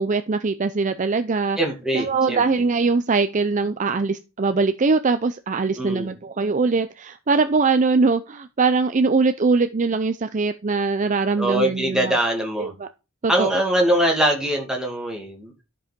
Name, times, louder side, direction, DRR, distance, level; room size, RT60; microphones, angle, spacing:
voice 1, 0.0-1.6 1.9-12.2 12.6-12.9 13.2-13.5, right 4 dB, 35° right, 0.5 m, -22 dB
voice 2, 1.6-2.4 5.8-6.1 11.4-12.7 13.3-15.5, right 1 dB, 5° right, 2.3 m, -22 dB
12.0 x 5.4 x 5.2 m
head